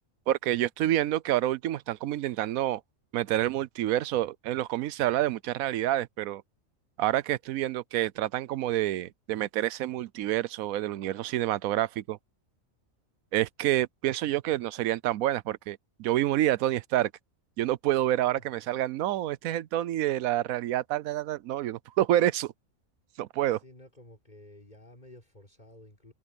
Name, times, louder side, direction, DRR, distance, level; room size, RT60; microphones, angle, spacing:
voice 1, 0.3-2.8 3.1-6.4 7.0-12.2 13.3-17.1 17.6-22.5 23.2-23.6, right 13 dB, 85° right, 1.1 m, -28 dB
voice 2, 23.5-26.1, left 1 dB, 30° left, 4.6 m, -52 dB
omnidirectional pair, 1.4 m